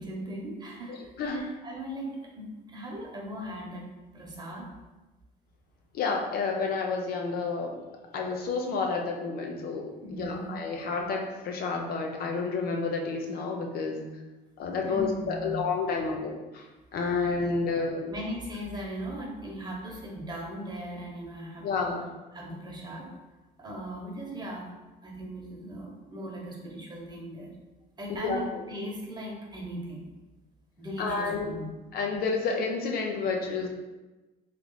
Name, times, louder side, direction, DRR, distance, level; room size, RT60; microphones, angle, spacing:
voice 1, 0.0-3.9 4.1-4.7 10.0-10.6 14.8-15.6 17.3-17.4 18.1-22.0 22.3-23.1 23.6-24.6 25.0-27.5 28.0-30.1 30.8-31.7, equal, 25° right, -2 dB, 1.1 m, -38 dB
voice 2, 0.9-1.5 5.9-7.7 8.1-14.0 14.6-16.6 16.9-18.2 21.6-22.0 28.2-28.6 31.0-31.5 31.9-33.7, left 4 dB, 65° left, 1 dB, 0.7 m, -30 dB
3.2 x 3.1 x 3.9 m, 1.1 s
cardioid pair, 110°, 17 cm